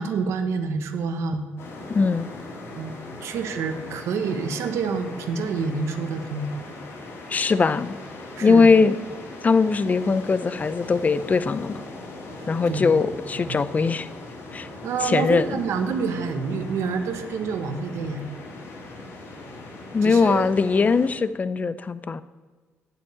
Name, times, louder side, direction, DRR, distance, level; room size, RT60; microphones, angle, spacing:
voice 1, 0.0-1.5 2.7-6.5 8.4-8.7 12.7-13.0 13.5-13.6 14.8-18.2 20.0-20.5, right 5 dB, 75° right, 7 dB, 1.2 m, -28 dB
sound 1, 1.6-21.1, left 2 dB, 65° left, 3.8 m, -40 dB
voice 2, 1.9-2.3 7.3-7.9 8.4-9.0 9.4-11.8 12.5-14.1 14.5-14.7 15.0-15.6 19.9-22.2, left 4 dB, 30° left, 15 dB, 0.6 m, -20 dB
8.9 x 8.4 x 8.6 m, 1.4 s
cardioid pair, 85°, 5 cm